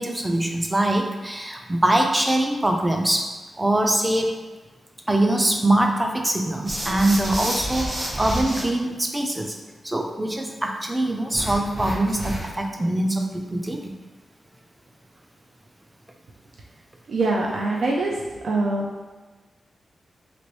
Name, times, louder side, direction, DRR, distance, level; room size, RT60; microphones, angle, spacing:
voice 1, 0.0-3.3 3.6-4.4 5.1-9.6 9.8-13.9, right 1 dB, 15° right, 3 dB, 0.4 m, -23 dB
sound 1, 6.6-8.6 11.3-12.7, right 1 dB, 55° right, 1.0 m, -29 dB
voice 2, 17.1-18.9, right 2 dB, 75° right, -2 dB, 0.4 m, -24 dB
3.0 x 2.9 x 3.0 m, 1.3 s
wide cardioid pair, 115°, 0 cm